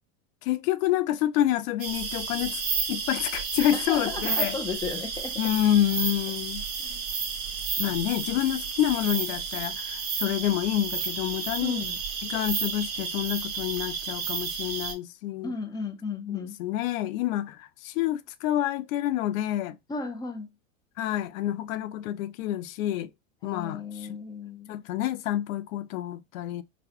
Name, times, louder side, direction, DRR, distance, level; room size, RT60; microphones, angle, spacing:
voice 1, 0.4-2.6 2.9-4.6 5.4-6.6 7.8-11.8 12.3-15.5 16.6-19.8 21.0-23.1 23.4-23.8 24.1-24.2 24.7-26.6, left 13 dB, 75° left, 0.5 m, -28 dB
sound 1, 1.8-14.9, right 6 dB, 35° right, 1.2 m, -32 dB
voice 2, 3.7-5.5 6.8-7.0 7.8-8.0 11.6-12.0 15.4-16.6 19.9-20.5 23.4-24.7, left 4 dB, 10° left, 0.5 m, -34 dB
3.9 x 2.3 x 2.9 m
hypercardioid pair, 105°, 41 cm